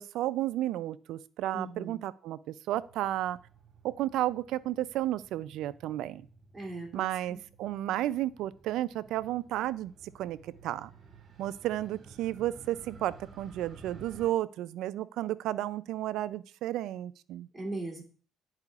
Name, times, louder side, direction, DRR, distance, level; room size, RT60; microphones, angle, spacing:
voice 1, 0.0-3.4 3.8-6.3 6.9-10.9 11.4-17.5, right 14 dB, 85° right, 16 dB, 0.3 m, -33 dB
voice 2, 1.5-2.0 6.5-7.4 17.5-18.0, right 2 dB, 10° right, -3 dB, 2.6 m, -39 dB
Motorcycle, 2.7-14.3, right 4 dB, 45° right, 1.5 m, -55 dB
10.5 x 4.8 x 2.4 m, 0.42 s
cardioid pair, 100°, 0 cm